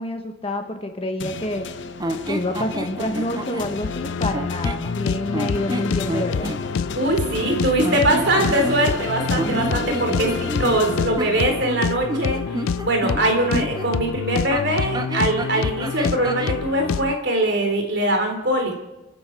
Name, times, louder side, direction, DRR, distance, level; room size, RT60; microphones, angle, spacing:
voice 1, 0.0-1.7 2.3-6.5 9.4-9.8 10.2-10.3, left 1 dB, 30° left, 5 dB, 1.4 m, -28 dB
sound 1, 1.2-11.8, left 4 dB, 60° left, 1.0 m, -32 dB
sound 2, 2.0-3.7 4.3-4.9 5.3-6.6 7.8-9.0 9.3-13.9 14.5-16.6, right 1 dB, 20° right, 0.8 m, -30 dB
sound 3, 3.8-17.2, left 6 dB, 90° left, 0.4 m, -27 dB
voice 2, 7.0-10.3 10.6-12.4 12.8-18.7, right 1 dB, 55° right, 3 dB, 3.5 m, -22 dB
28.5 x 10.5 x 4.6 m, 1.0 s
head